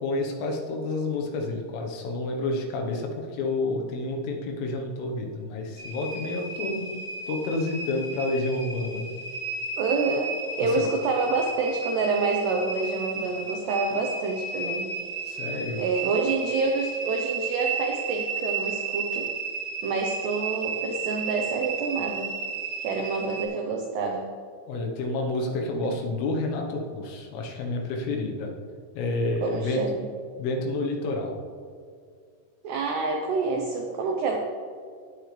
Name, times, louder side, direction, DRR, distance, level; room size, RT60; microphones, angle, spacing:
voice 1, 0.0-7.0 7.3-9.1 10.6-10.9 15.3-15.9 24.7-28.5 29.0-29.8 30.4-31.4, left 2 dB, 80° left, 1 dB, 3.8 m, -29 dB
sound 1, 5.8-23.4, right 4 dB, 60° right, 4.9 m, -33 dB
voice 2, 9.8-14.9 15.8-19.3 19.8-22.3 22.8-24.3 26.0-26.1 29.4-30.1 32.6-34.4, right 4 dB, 85° right, 2 dB, 2.4 m, -27 dB
18.5 x 8.6 x 3.4 m, 2.1 s
omnidirectional pair, 6.0 m